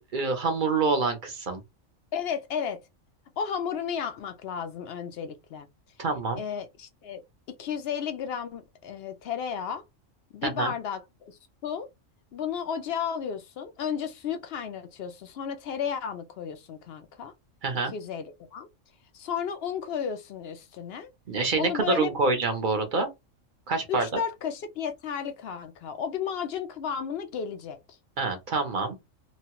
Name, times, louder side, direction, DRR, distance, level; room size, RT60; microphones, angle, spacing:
voice 1, 0.0-1.6 6.0-6.4 10.4-10.7 17.6-17.9 21.3-23.1 23.7-24.1 28.2-29.0, right 4 dB, 45° right, 0.7 m, -26 dB
voice 2, 2.1-2.8 3.4-5.7 6.4-7.2 7.6-9.8 10.3-11.9 12.3-17.3 17.8-18.7 19.1-21.1 21.6-22.1 23.9-27.8, left 7 dB, 65° left, 0.6 m, -33 dB
3.0 x 2.2 x 2.9 m
omnidirectional pair, 1.4 m